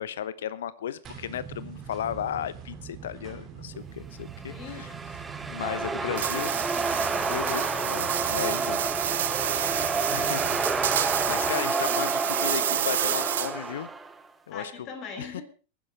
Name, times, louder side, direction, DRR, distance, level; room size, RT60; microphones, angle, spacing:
voice 1, 0.0-4.9 5.5-6.5 7.3-8.8 10.1-13.9 14.5-14.9 15.2-15.4, left 10 dB, 60° left, 0.9 m, -35 dB
sound 1, 1.0-11.6, right 7 dB, 30° right, 2.6 m, -43 dB
sound 2, 4.3-14.2, right 3 dB, 10° right, 1.0 m, -30 dB
voice 2, 4.5-4.9 5.9-7.6 14.5-15.4, left 5 dB, 35° left, 2.9 m, -42 dB
sound 3, 6.2-13.7, right 11 dB, 60° right, 0.7 m, -29 dB
22.5 x 10.0 x 3.5 m
figure-of-eight pair, 90°, 0 cm